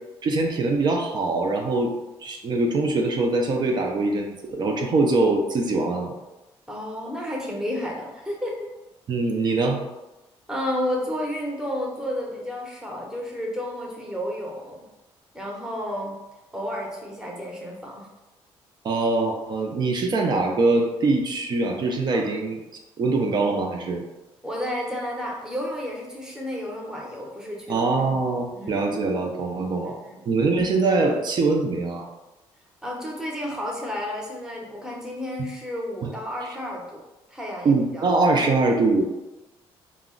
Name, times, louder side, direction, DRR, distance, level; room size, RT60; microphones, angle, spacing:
voice 1, 0.2-1.9 2.2-6.1 9.1-9.8 18.8-22.6 23.0-24.0 27.7-30.0 30.3-32.1 36.0-36.1 37.6-39.1, right 3 dB, 45° right, 2 dB, 0.4 m, -23 dB
voice 2, 6.7-8.7 9.4-9.5 10.5-14.9 15.3-16.2 16.5-18.1 22.1-22.3 24.4-27.9 28.5-28.8 29.9-30.3 32.8-37.0 37.3-38.1, equal, 5° right, -2 dB, 0.7 m, -31 dB
2.3 x 2.0 x 3.6 m, 1.0 s
cardioid pair, 95°, 10 cm